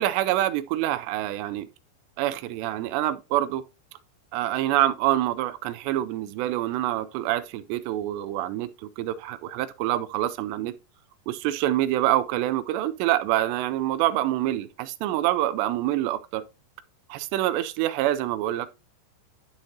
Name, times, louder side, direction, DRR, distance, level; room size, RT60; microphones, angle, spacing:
voice 1, 0.0-1.7 2.2-3.6 4.3-8.7 9.0-10.8 11.3-16.4 17.1-18.7, right 14 dB, 80° right, 2.6 m, -26 dB
11.5 x 6.4 x 2.7 m
omnidirectional pair, 5.2 m